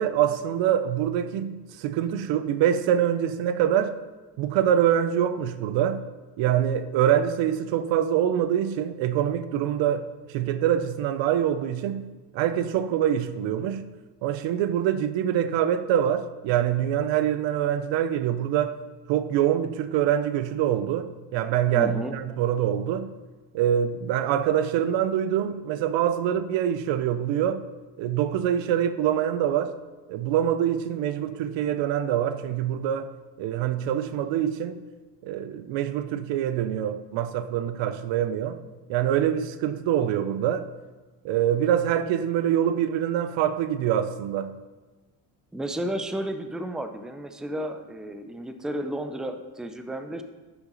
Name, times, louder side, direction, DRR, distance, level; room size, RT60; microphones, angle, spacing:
voice 1, 0.0-4.0 4.4-6.0 6.4-13.9 14.2-18.8 19.1-23.1 23.5-27.7 28.0-29.8 30.1-34.8 35.2-38.6 38.9-40.7 41.2-44.5, right 10 dB, 85° right, 0.6 m, -25 dB
voice 2, 21.7-22.2 45.5-50.2, right 1 dB, ahead, 0.5 m, -32 dB
9.5 x 6.0 x 3.9 m
cardioid pair, 100°, 44 cm